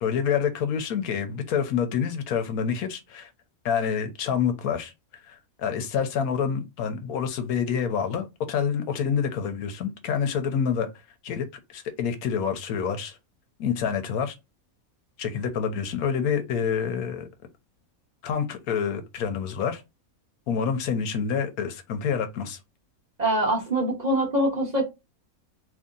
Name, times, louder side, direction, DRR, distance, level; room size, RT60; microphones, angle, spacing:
voice 1, 0.0-3.3 3.6-4.9 5.3-10.9 11.2-13.2 13.6-14.3 15.2-17.3 18.2-19.8 20.5-22.6, left 7 dB, 85° left, 1.2 m, -27 dB
voice 2, 23.2-24.8, right 1 dB, 35° right, 0.9 m, -24 dB
2.9 x 2.7 x 3.7 m
omnidirectional pair, 1.5 m